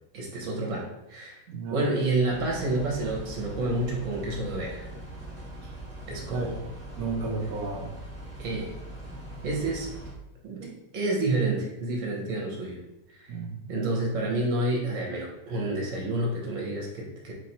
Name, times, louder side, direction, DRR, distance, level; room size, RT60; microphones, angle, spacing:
voice 1, 0.1-1.4 1.7-4.9 6.1-6.6 8.4-8.7 9.4-9.9 10.4-12.8 13.1-13.3 13.7-17.3, right 2 dB, 50° right, -2 dB, 1.0 m, -29 dB
voice 2, 1.5-1.9 5.6-5.7 6.3-7.9 13.3-13.7, right 3 dB, 85° right, 0 dB, 0.8 m, -33 dB
sound 1, 2.3-10.1, right 1 dB, 5° left, 0.6 m, -41 dB
3.2 x 3.1 x 4.1 m, 0.93 s
omnidirectional pair, 2.3 m